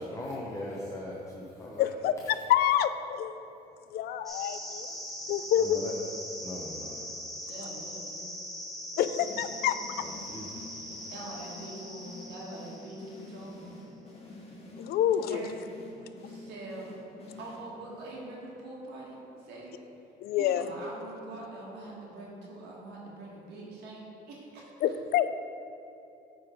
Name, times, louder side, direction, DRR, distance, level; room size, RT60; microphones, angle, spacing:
voice 1, 0.0-2.1 5.6-6.0 6.4-7.0 10.0-10.5, left 1 dB, 20° left, -4 dB, 0.9 m, -39 dB
voice 2, 1.8-2.1 2.5-3.5 3.9-4.9 5.3-5.8 9.0-9.8 14.8-15.4 20.2-20.7 24.8-25.3, left 11 dB, 65° left, 12 dB, 0.4 m, -27 dB
sound 1, 4.3-13.4, equal, ahead, 1.4 m, -41 dB
voice 3, 7.4-8.3 10.7-13.8 15.3-15.6 16.2-16.9 17.4-19.8 20.4-24.9, right 2 dB, 75° right, -4 dB, 1.5 m, -44 dB
sound 2, 9.2-18.0, left 2 dB, 35° left, 1.5 m, -48 dB
9.2 x 3.9 x 5.0 m, 2.8 s
cardioid pair, 110°, 17 cm